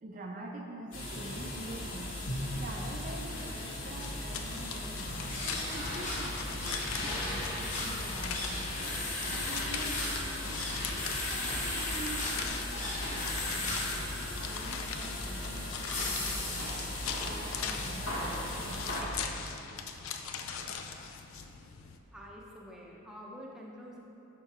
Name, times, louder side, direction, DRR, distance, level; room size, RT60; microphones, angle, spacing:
voice 1, 0.0-2.1 2.5-8.8 9.3-10.5 10.9-13.8 14.4-16.7 17.1-19.2, right 2 dB, 40° right, 0 dB, 0.4 m, -46 dB
sound 1, 0.9-19.0, left 1 dB, 70° left, 1.1 m, -38 dB
sound 2, 4.0-22.0, left 6 dB, 85° left, 0.5 m, -41 dB
sound 3, 5.2-17.7, left 2 dB, 35° left, 1.1 m, -38 dB
voice 2, 22.1-24.0, equal, 5° right, -4 dB, 0.7 m, -47 dB
6.4 x 5.8 x 4.3 m, 2.9 s
head